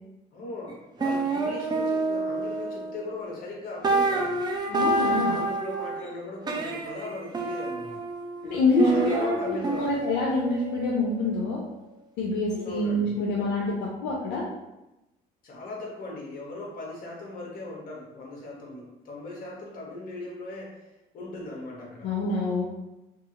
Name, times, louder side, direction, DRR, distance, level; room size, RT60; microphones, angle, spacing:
voice 1, 0.3-4.4 5.0-8.0 8.8-10.1 12.5-13.2 15.4-20.9 21.1-22.1, left 2 dB, 55° left, -2 dB, 0.9 m, -38 dB
sound 1, 0.7-0.8 1.0-3.4 3.8-6.1 6.5-11.7, right 3 dB, 25° right, 0.4 m, -29 dB
voice 2, 4.7-5.4 8.4-11.6 12.2-14.5 22.0-22.7, left 2 dB, 80° left, -3 dB, 0.5 m, -26 dB
2.6 x 2.4 x 2.7 m, 0.96 s
cardioid pair, 110°, 17 cm